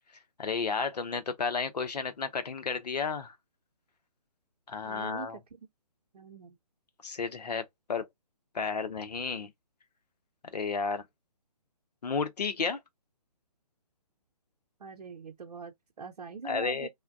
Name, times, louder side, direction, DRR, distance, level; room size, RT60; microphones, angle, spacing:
voice 1, 0.4-3.4 4.7-5.4 7.0-8.1 8.5-9.5 10.5-11.1 12.0-12.8 16.4-16.9, left 5 dB, 85° left, 0.7 m, -32 dB
voice 2, 4.8-5.6 6.1-6.6 14.8-16.9, right 5 dB, 80° right, 0.6 m, -43 dB
3.3 x 2.2 x 2.3 m
hypercardioid pair, 145°, 20 cm